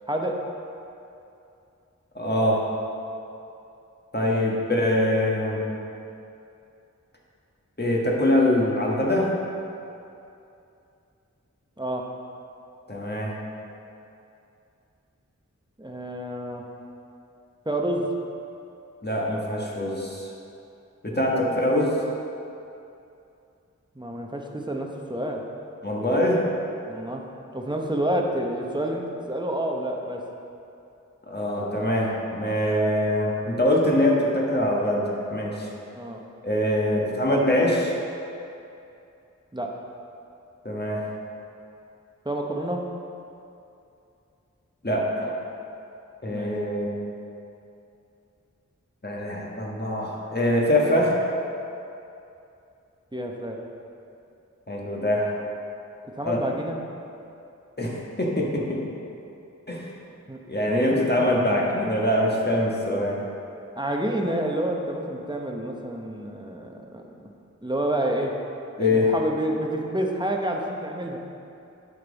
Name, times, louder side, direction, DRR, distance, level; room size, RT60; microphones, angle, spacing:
voice 1, 2.1-2.7 4.1-5.6 7.8-9.3 12.9-13.4 19.0-20.3 21.0-22.0 25.8-26.5 31.3-35.7 36.4-37.9 40.6-41.1 44.8-45.3 46.2-46.9 49.0-51.1 54.7-55.4 56.2-56.4 57.8-58.8 59.7-59.8 60.5-63.2 68.8-69.1, left 1 dB, 35° left, -4 dB, 1.4 m, -23 dB
voice 2, 15.8-16.6 17.7-18.0 21.4-21.6 24.0-25.4 26.9-27.2 27.5-30.2 36.0-36.2 39.5-39.7 42.2-42.8 46.3-46.5 53.1-53.6 56.2-56.8 60.3-61.0 61.5-61.6 63.8-67.0 67.6-68.3 68.8-71.2, right 1 dB, 15° right, 1 dB, 0.9 m, -29 dB
10.5 x 5.3 x 4.0 m, 2.7 s
wide cardioid pair, 40°, 31 cm